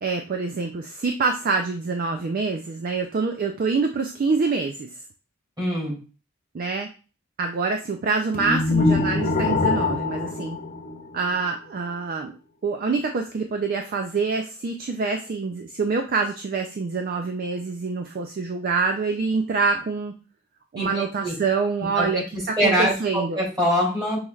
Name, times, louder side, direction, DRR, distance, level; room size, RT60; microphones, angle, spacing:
voice 1, 0.0-4.9 6.5-6.9 7.4-10.6 11.1-12.4 12.6-20.1 20.7-23.4, right 4 dB, 40° right, 4 dB, 0.3 m, -26 dB
voice 2, 5.6-6.0 20.8-21.3 22.0-22.2 22.6-24.3, equal, 20° right, -5 dB, 2.3 m, -24 dB
sound 1, 8.3-11.5, left 3 dB, 40° left, 0.5 m, -24 dB
5.4 x 3.1 x 2.3 m, 0.34 s
head